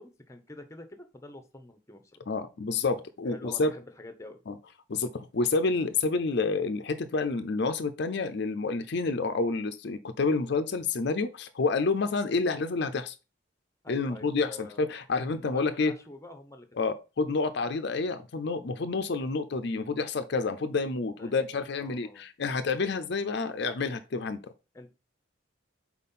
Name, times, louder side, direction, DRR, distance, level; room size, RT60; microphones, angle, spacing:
voice 1, 0.0-2.2 3.3-4.4 13.8-14.9 15.3-16.7 21.2-21.4 21.8-22.2 24.7-24.9, left 2 dB, 15° left, 0.7 m, -47 dB
voice 2, 2.3-3.7 4.5-4.6 4.9-13.1 13.9-15.9 16.8-24.4, left 4 dB, 55° left, 0.5 m, -29 dB
4.4 x 4.2 x 5.4 m
head